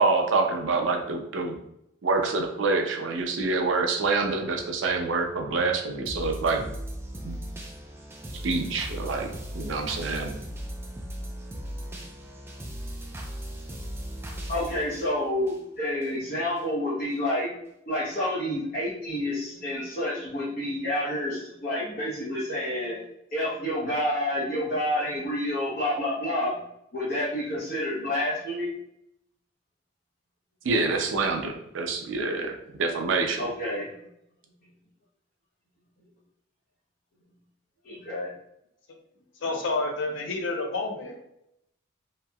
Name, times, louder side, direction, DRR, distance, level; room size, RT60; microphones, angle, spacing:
voice 1, 0.0-1.6 2.0-6.7 7.2-7.4 8.4-9.3 9.5-10.4 30.6-33.4, right 3 dB, 80° right, 3 dB, 0.5 m, -26 dB
sound 1, 6.0-16.1 16.6-16.7, equal, 15° right, 0.3 m, -38 dB
voice 2, 14.5-17.5 17.9-23.0 23.3-26.6 26.9-28.7 33.4-33.9 37.8-38.3, left 1 dB, 45° left, -8 dB, 0.8 m, -29 dB
voice 3, 39.4-41.2, left 3 dB, 75° left, 3 dB, 0.5 m, -29 dB
2.9 x 2.7 x 2.3 m, 0.79 s
head